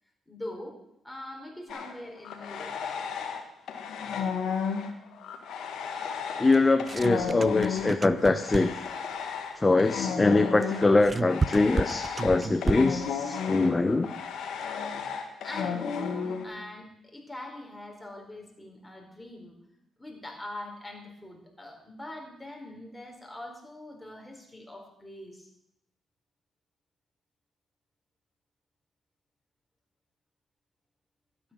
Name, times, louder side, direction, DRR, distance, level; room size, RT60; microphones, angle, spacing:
voice 1, 0.3-0.8 1.0-2.7 15.1-19.6 20.0-25.5, left 1 dB, 10° left, 1 dB, 4.4 m, -43 dB
sound 1, 1.7-3.4 3.7-16.4, left 6 dB, 75° left, 1.7 m, -33 dB
voice 2, 6.4-8.7 9.6-14.1, left 3 dB, 25° left, 10 dB, 0.7 m, -23 dB
sound 2, 6.5-9.0 10.6-13.1, right 4 dB, 35° right, 0.4 m, -32 dB
12.0 x 9.9 x 6.2 m, 0.77 s
supercardioid pair, 65°, 0 cm